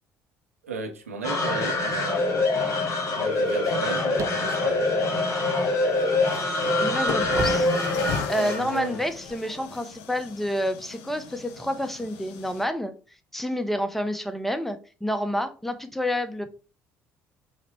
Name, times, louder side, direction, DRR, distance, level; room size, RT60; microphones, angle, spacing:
voice 1, 0.6-2.3 3.1-4.9 8.3-9.0, right 4 dB, 90° right, 4 dB, 0.6 m, -35 dB
sound 1, 1.2-9.6, left 2 dB, 45° left, 1.3 m, -25 dB
sound 2, 4.0-5.8 6.3-8.5, right 6 dB, 40° right, 0.4 m, -36 dB
sound 3, 6.3-6.4 7.1-12.7, left 7 dB, 70° left, 0.5 m, -38 dB
voice 2, 6.8-7.7 7.9-16.5, equal, 5° left, 8 dB, 0.6 m, -29 dB
4.8 x 2.1 x 3.3 m, 0.35 s
hypercardioid pair, 50°, 7 cm